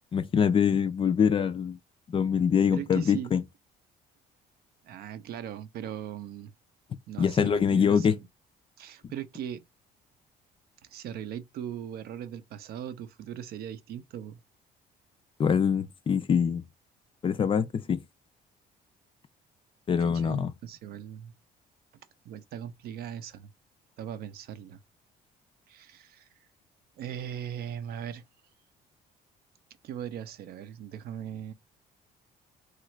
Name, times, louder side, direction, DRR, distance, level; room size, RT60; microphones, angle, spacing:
voice 1, 0.1-1.8 2.1-3.4 7.2-8.1 15.4-16.6 17.2-18.0 19.9-20.5, left 7 dB, 30° left, 0.4 m, -24 dB
voice 2, 2.7-3.3 4.8-6.5 7.1-8.3 8.8-9.6 10.9-14.4 20.0-21.3 22.2-23.5 24.0-24.8 25.7-26.3 27.0-28.2 29.8-31.5, right 9 dB, 65° right, 0.5 m, -39 dB
3.1 x 2.4 x 3.0 m
cardioid pair, 110°, 17 cm